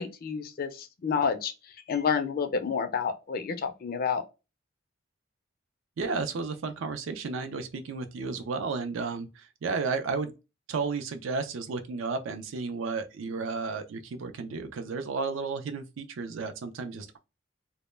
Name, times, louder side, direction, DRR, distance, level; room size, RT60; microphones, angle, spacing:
voice 1, 0.0-1.5 1.9-4.2, left 6 dB, 45° left, 0.3 m, -29 dB
voice 2, 6.0-10.3 10.7-17.2, right 4 dB, 75° right, 0.4 m, -33 dB
2.1 x 2.0 x 3.1 m
head